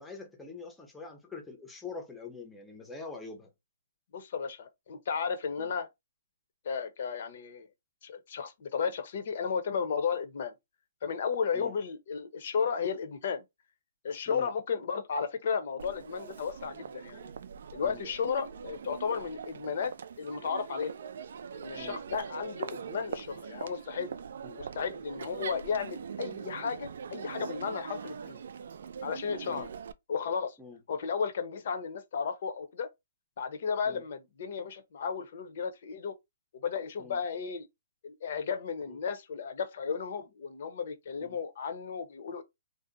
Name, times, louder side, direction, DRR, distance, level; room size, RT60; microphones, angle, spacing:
voice 1, 0.0-3.5 5.6-5.7 11.5-11.8 14.3-14.5 17.8-18.0 21.8-22.0 24.4-24.6 29.5-29.7 30.6-30.8 33.9-34.0 37.0-37.2 38.9-39.0 41.2-41.4, left 4 dB, 5° left, 0.6 m, -45 dB
voice 2, 4.1-5.9 6.6-7.7 8.0-10.5 11.0-13.4 14.0-17.3 17.7-20.9 21.5-24.1 24.6-28.4 29.0-29.7 30.1-30.6 30.9-32.9 33.4-36.1 36.5-37.7 38.0-42.4, left 6 dB, 50° left, 0.7 m, -34 dB
Crowd, 15.8-29.9, right 7 dB, 65° right, 0.3 m, -42 dB
2.6 x 2.1 x 3.8 m
hypercardioid pair, 160°, 0 cm